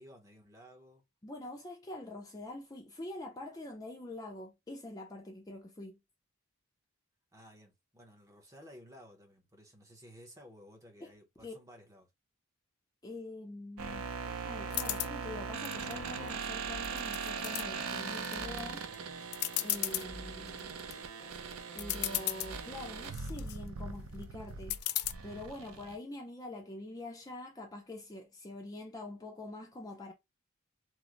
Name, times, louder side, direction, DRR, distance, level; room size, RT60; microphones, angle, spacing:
voice 1, 0.0-1.0 7.3-12.1, equal, 15° right, 0.7 m, -55 dB
voice 2, 1.2-6.0 11.0-11.1 11.4-11.5 13.0-18.8 19.6-20.8 21.7-24.8 25.2-30.1, left 2 dB, 15° left, 0.4 m, -45 dB
sound 1, 13.8-25.9, right 5 dB, 80° right, 0.5 m, -40 dB
sound 2, 14.7-15.1 15.6-16.4 16.8-17.6 18.1-18.6 18.9-19.0 19.3-20.1 20.6-20.9 21.5-21.6 21.8-22.5 23.0-23.6 24.7-25.1, left 14 dB, 90° left, 0.3 m, -35 dB
sound 3, 16.6-23.5, left 2 dB, 65° right, 1.3 m, -53 dB
3.1 x 2.0 x 3.6 m
head